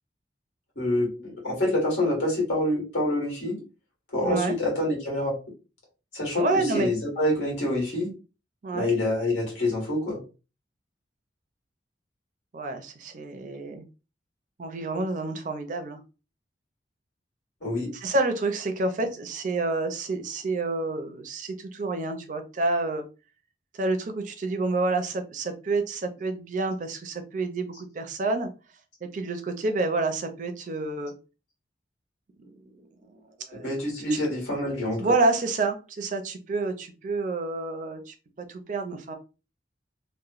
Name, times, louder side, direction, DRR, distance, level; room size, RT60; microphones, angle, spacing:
voice 1, 0.7-3.6 4.1-5.4 6.1-8.1 8.7-10.2 17.6-17.9 33.5-35.0, left 1 dB, 85° left, -1 dB, 1.5 m, -26 dB
voice 2, 4.2-4.6 6.4-6.9 8.6-8.9 12.5-13.8 14.6-16.0 17.9-23.0 23.8-28.5 29.0-31.1 32.4-32.9 33.1-33.2 33.5-33.7 34.1-34.2 35.0-39.1, right 3 dB, 45° right, 6 dB, 0.4 m, -28 dB
3.0 x 2.1 x 2.4 m, 0.31 s
head